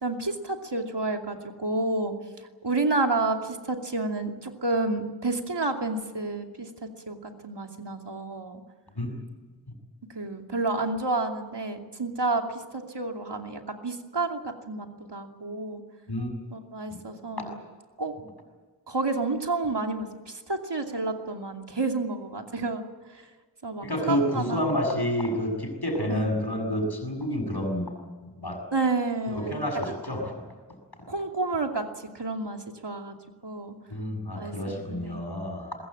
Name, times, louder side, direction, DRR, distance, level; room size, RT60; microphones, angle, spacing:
voice 1, 0.0-2.1 2.6-6.7 7.1-8.6 10.1-12.4 12.7-15.8 16.5-17.5 18.0-18.1 18.9-22.8 23.6-24.7 26.1-26.3 28.7-29.6 31.1-33.1 33.4-33.7 34.3-35.2, right 3 dB, 80° right, 4 dB, 2.7 m, -30 dB
voice 2, 23.8-27.9 28.2-28.6 29.3-30.3 33.9-35.8, equal, 65° left, 5 dB, 6.9 m, -29 dB
23.0 x 21.0 x 8.7 m, 1.4 s
wide cardioid pair, 45°, 41 cm